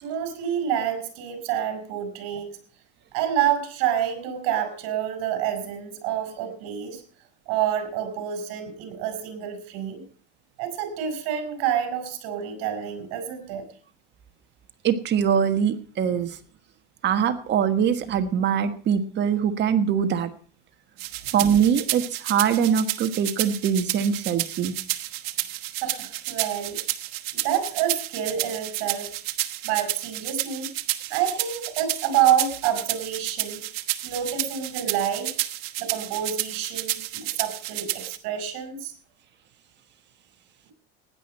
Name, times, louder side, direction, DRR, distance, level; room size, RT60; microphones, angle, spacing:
voice 1, 0.0-2.5 3.1-7.0 7.5-10.0 10.6-13.6 25.8-26.8 27.3-29.1 29.6-30.7 31.1-33.6 34.0-35.3 35.8-38.9, right 9 dB, 60° right, 8 dB, 4.9 m, -28 dB
voice 2, 14.8-16.4 17.0-20.3 21.3-24.7 31.0-31.1, right 8 dB, 35° right, 9 dB, 1.4 m, -23 dB
sound 1, 21.0-38.2, right 16 dB, 80° right, 1.3 m, -31 dB
16.0 x 10.5 x 4.3 m, 0.44 s
supercardioid pair, 130°, 30 cm